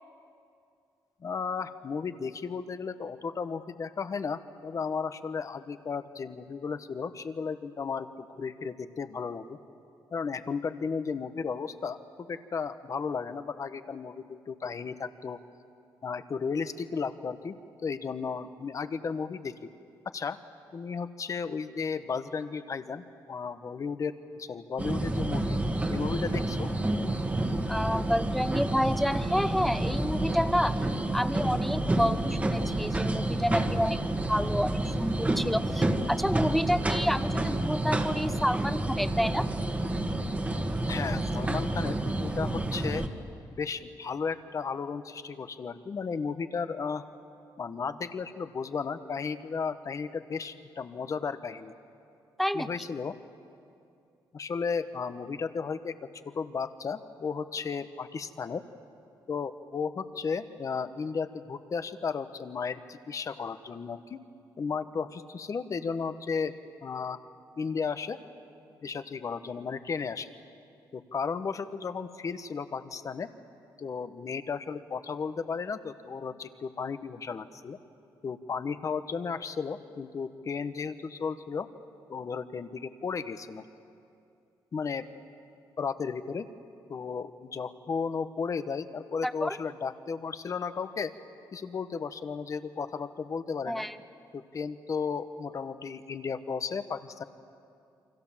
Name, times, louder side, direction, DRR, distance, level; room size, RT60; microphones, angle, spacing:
voice 1, 1.2-9.6 10.1-15.4 16.0-17.6 17.8-19.7 20.1-20.4 20.7-25.6 25.9-26.7 40.9-43.1 43.5-47.0 47.6-51.7 52.5-53.2 54.3-58.6 59.3-64.2 64.6-66.5 66.8-67.2 67.6-68.2 68.8-70.3 70.9-73.3 73.8-77.8 78.2-81.7 82.1-83.6 84.7-85.1 85.8-86.5 86.9-91.1 91.5-93.9 94.3-97.2, left 5 dB, 40° left, 11 dB, 1.2 m, -34 dB
sound 1, 24.8-43.1, right 1 dB, 20° right, 1.7 m, -29 dB
voice 2, 27.7-34.0 34.3-39.5 52.4-52.7 89.2-89.6 93.7-94.0, equal, ahead, 11 dB, 0.9 m, -29 dB
29.0 x 25.0 x 7.4 m, 2.5 s
cardioid pair, 110°, 8 cm